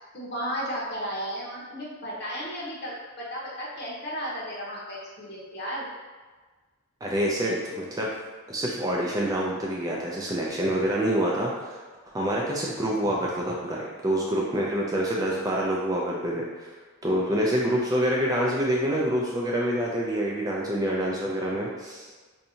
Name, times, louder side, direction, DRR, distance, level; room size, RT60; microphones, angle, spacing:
voice 1, 0.1-5.8, equal, 50° left, -5 dB, 0.9 m, -34 dB
voice 2, 7.0-8.1 8.5-11.8 12.1-16.7 17.0-22.3, equal, 15° right, -3 dB, 0.3 m, -27 dB
4.4 x 2.7 x 2.7 m, 1.4 s
head